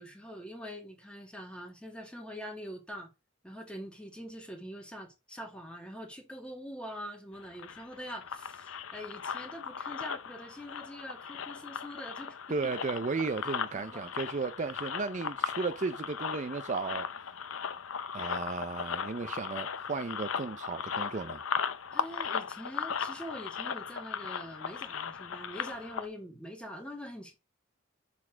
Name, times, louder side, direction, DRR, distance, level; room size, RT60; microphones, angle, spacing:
voice 1, 0.0-3.1 3.4-12.8 13.5-14.1 21.9-27.3, equal, 5° left, 2.1 m, -44 dB
sound 1, 7.4-26.1, left 6 dB, 80° left, 0.7 m, -37 dB
voice 2, 12.5-17.1 18.1-21.4, right 4 dB, 35° right, 0.5 m, -34 dB
7.1 x 4.2 x 6.2 m
head